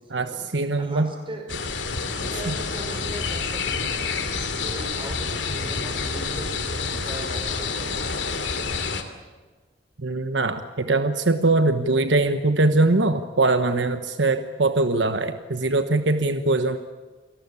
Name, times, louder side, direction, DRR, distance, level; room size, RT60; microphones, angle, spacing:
voice 1, 0.1-1.1 2.5-2.6 10.0-16.8, right 2 dB, 80° right, 9 dB, 1.2 m, -22 dB
voice 2, 0.8-1.5 2.2-4.2 4.6-8.3, right 1 dB, 30° right, 3 dB, 5.8 m, -38 dB
sound 1, 1.5-9.0, left 4 dB, 80° left, 2.7 m, -28 dB
29.0 x 19.0 x 8.5 m, 1.4 s
head